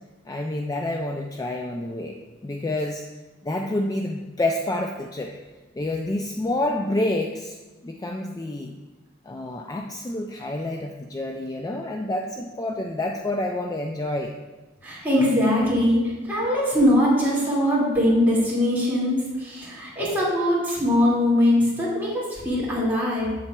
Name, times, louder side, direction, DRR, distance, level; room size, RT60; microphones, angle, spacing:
voice 1, 0.3-2.2 2.4-3.0 3.4-5.3 5.7-7.6 7.8-8.7 9.3-14.3, left 1 dB, 20° left, 2 dB, 0.3 m, -28 dB
voice 2, 14.8-23.3, left 1 dB, 10° right, -7 dB, 2.2 m, -21 dB
7.8 x 7.1 x 2.3 m, 1.2 s
head